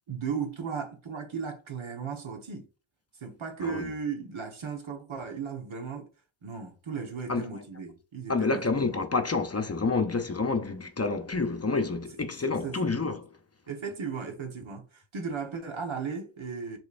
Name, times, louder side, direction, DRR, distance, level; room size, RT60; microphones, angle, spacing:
voice 1, 0.1-2.7 3.2-6.1 6.4-8.9 12.1-12.2 12.6-12.8 13.7-16.8, right 6 dB, 70° right, 1.2 m, -36 dB
voice 2, 8.3-13.2, left 3 dB, 30° left, 0.6 m, -28 dB
6.5 x 3.1 x 2.5 m
wide cardioid pair, 80°, 48 cm